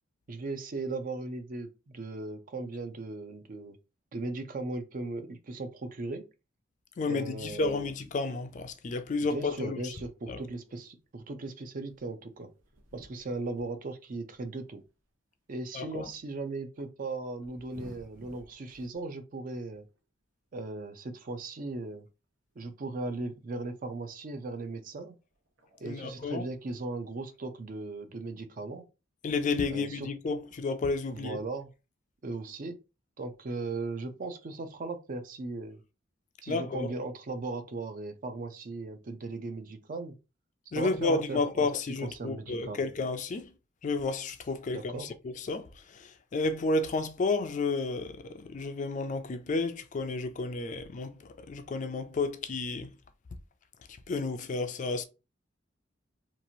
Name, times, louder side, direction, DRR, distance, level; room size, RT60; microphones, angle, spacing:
voice 1, 0.3-3.8 4.1-6.3 7.1-7.9 9.3-12.5 12.9-14.8 15.5-19.9 20.5-22.1 22.6-25.2 25.8-28.9 29.7-30.1 31.1-31.7 32.2-32.8 33.2-35.8 36.4-40.2 40.8-41.7 42.0-42.9 44.7-45.1, right 3 dB, 45° right, 0.5 m, -37 dB
voice 2, 7.0-9.9 10.3-10.4 15.7-16.1 25.8-26.5 29.2-31.4 36.5-36.9 40.7-43.5 43.8-53.0 53.9-55.0, left 3 dB, 40° left, 0.4 m, -31 dB
sound 1, 9.9-10.8 11.2-15.4 15.7-16.0 17.0-19.1 19.5-20.1 21.1-21.2 21.6-21.7 22.1-22.2 22.5-23.8 24.9-25.0 25.3-26.5 27.0-27.5, right 2 dB, 80° right, 0.9 m, -57 dB
2.9 x 2.4 x 2.6 m
head